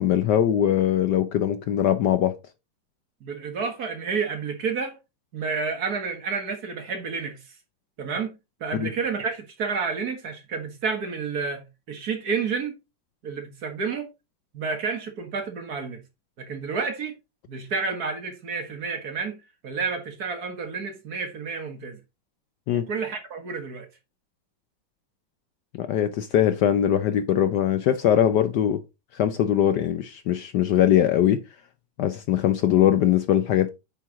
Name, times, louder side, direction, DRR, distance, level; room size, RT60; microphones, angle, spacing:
voice 1, 0.0-2.4 8.7-8.9 22.7-22.9 25.7-28.8 29.1-31.4 32.0-33.7, left 10 dB, 70° left, 1.1 m, -21 dB
voice 2, 3.2-5.0 5.3-7.4 8.0-12.8 13.2-14.1 14.5-16.0 16.4-17.2 17.5-22.0 22.7-23.9, right 5 dB, 50° right, 1.8 m, -30 dB
9.2 x 4.6 x 3.6 m
omnidirectional pair, 2.2 m